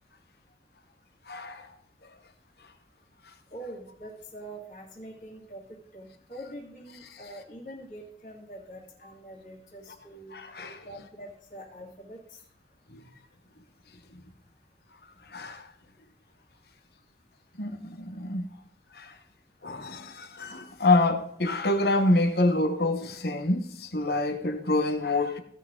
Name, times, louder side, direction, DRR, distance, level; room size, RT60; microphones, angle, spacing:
voice 1, 1.3-1.7 7.1-7.2 10.3-10.9 12.9-13.0 15.3-15.7 17.6-18.5 18.9-19.2 19.6-25.4, left 2 dB, 60° left, 1.2 m, -27 dB
voice 2, 3.5-5.6 5.9-10.4 10.8-12.2, right 1 dB, 45° left, 2.4 m, -44 dB
16.0 x 6.0 x 3.9 m
head